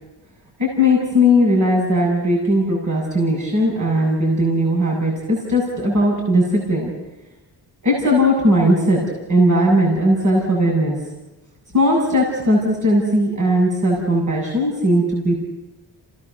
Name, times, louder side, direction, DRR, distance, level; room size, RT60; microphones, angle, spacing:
voice 1, 0.6-6.9 7.8-9.0 9.3-11.0 11.7-15.4, equal, 45° right, -3 dB, 7.5 m, -18 dB
27.5 x 19.0 x 6.8 m, 1.1 s
cardioid pair, 95°, 42 cm